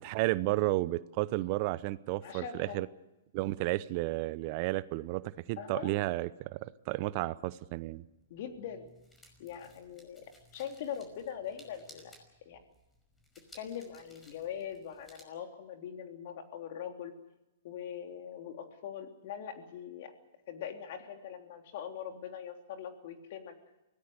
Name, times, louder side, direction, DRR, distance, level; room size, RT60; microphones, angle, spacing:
voice 1, 0.0-2.9 3.3-8.0, right 19 dB, 45° right, 18 dB, 0.8 m, -32 dB
voice 2, 2.2-2.9 5.6-6.0 8.3-8.9 9.4-10.2 10.5-12.1 12.5-12.6 13.5-17.1 17.6-20.1 20.5-23.6, left 8 dB, 55° left, 5 dB, 3.4 m, -42 dB
sound 1, 7.9-15.2, equal, 10° left, 5.5 m, -60 dB
24.0 x 17.5 x 8.1 m, 0.99 s
hypercardioid pair, 120°, 0 cm